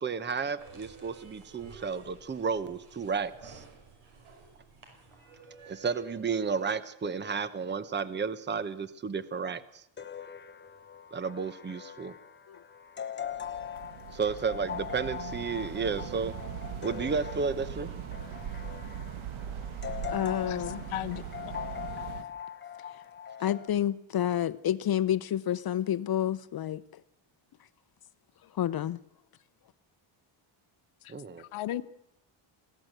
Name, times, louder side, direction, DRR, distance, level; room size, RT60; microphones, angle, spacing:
voice 1, 0.0-3.6 5.7-9.8 11.1-12.1 14.1-16.3 16.8-17.9 31.1-31.4, right 5 dB, 20° right, 1.0 m, -32 dB
sound 1, 0.6-6.7, right 3 dB, 90° right, 5.6 m, -52 dB
sound 2, 10.0-23.7, left 9 dB, 20° left, 1.0 m, -41 dB
sound 3, 13.2-22.2, right 9 dB, 70° right, 1.4 m, -40 dB
voice 2, 20.1-20.8 23.4-26.8 28.6-29.0, left 10 dB, 50° left, 0.7 m, -29 dB
voice 3, 20.9-21.5 31.5-31.8, left 13 dB, 80° left, 1.1 m, -35 dB
22.5 x 16.5 x 8.0 m
cardioid pair, 135°, 49 cm